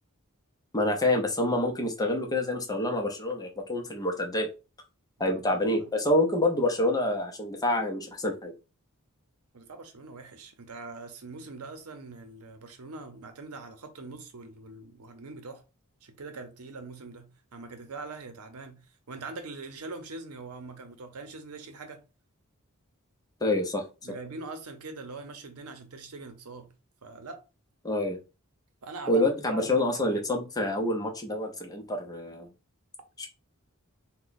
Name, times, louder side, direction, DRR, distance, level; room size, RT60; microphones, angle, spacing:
voice 1, 0.7-4.5 5.2-8.5 23.4-23.8 27.8-28.2 29.1-32.5 33.2-33.3, left 1 dB, 15° left, 0.6 m, -27 dB
voice 2, 9.5-15.6 16.0-18.8 19.1-22.0 24.0-26.7 27.0-27.4 28.8-30.2, right 3 dB, 80° right, 0.7 m, -43 dB
2.9 x 2.2 x 4.0 m
head